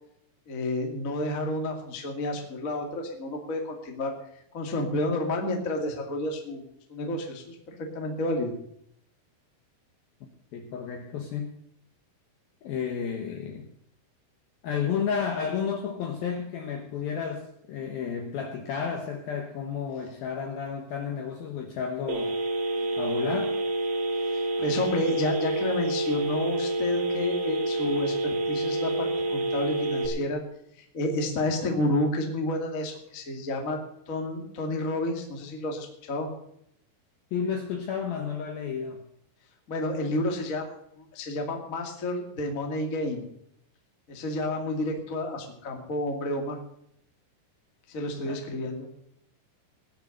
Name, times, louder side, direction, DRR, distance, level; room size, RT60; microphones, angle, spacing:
voice 1, 0.5-4.1 4.5-6.6 6.9-8.5 24.3-30.4 30.7-33.8 34.1-36.3 39.7-43.2 44.1-46.6 47.9-48.9, left 1 dB, 45° left, 2 dB, 1.0 m, -30 dB
voice 2, 10.5-11.6 12.6-13.7 14.6-22.4 23.0-23.6 37.3-39.0 48.3-48.4, left 7 dB, 70° left, 4 dB, 2.3 m, -32 dB
Telephone, 22.1-30.1, right 2 dB, 70° right, 4.4 m, -28 dB
19.5 x 6.9 x 6.6 m, 0.73 s
omnidirectional pair, 5.9 m